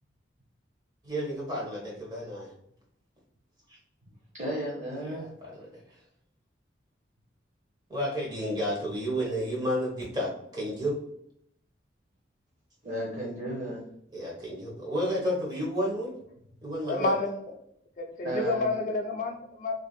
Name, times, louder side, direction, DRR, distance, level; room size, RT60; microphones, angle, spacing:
voice 1, 1.0-2.5 3.7-3.8 5.0-6.0 7.9-10.9 14.1-16.1 16.6-17.1, equal, 20° right, -4 dB, 1.0 m, -31 dB
voice 2, 4.4-5.3 12.8-13.9 18.2-18.7, right 1 dB, 40° right, -4 dB, 0.6 m, -33 dB
voice 3, 16.9-17.3 18.0-19.7, left 3 dB, 40° left, 3 dB, 0.3 m, -29 dB
3.3 x 2.5 x 2.3 m, 0.72 s
head